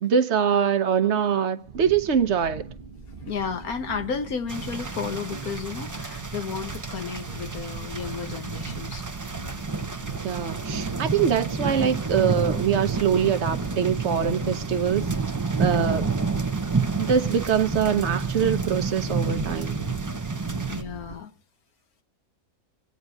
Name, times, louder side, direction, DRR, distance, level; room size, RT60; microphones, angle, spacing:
voice 1, 0.0-2.7 10.2-15.1 15.6-16.1 17.0-19.8, right 7 dB, 55° right, 1.1 m, -23 dB
sound 1, 1.6-21.1, right 5 dB, 40° right, 1.3 m, -40 dB
voice 2, 3.3-9.1 15.6-15.9 20.7-21.3, left 6 dB, 85° left, 1.7 m, -33 dB
sound 2, 4.5-20.8, right 4 dB, 20° right, 0.5 m, -29 dB
25.5 x 9.3 x 2.7 m
omnidirectional pair, 1.5 m